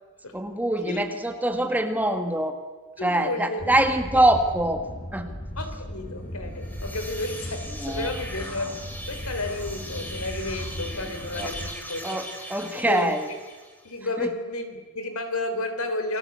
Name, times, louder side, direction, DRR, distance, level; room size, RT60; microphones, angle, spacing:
voice 1, 0.3-2.6 3.0-4.8 5.1-5.3 7.8-8.1 11.4-11.5 12.0-12.2 12.5-13.2 14.2-14.3, right 1 dB, 5° right, 6 dB, 1.7 m, -24 dB
voice 2, 3.0-3.6 4.1-4.3 5.6-8.7 9.1-13.4 13.8-16.2, left 2 dB, 75° left, 8 dB, 3.7 m, -32 dB
sound 1, 3.6-11.8, equal, 35° left, 1.7 m, -37 dB
sound 2, 6.5-13.9, equal, 10° left, 3.8 m, -40 dB
29.0 x 20.0 x 8.3 m, 1.3 s
head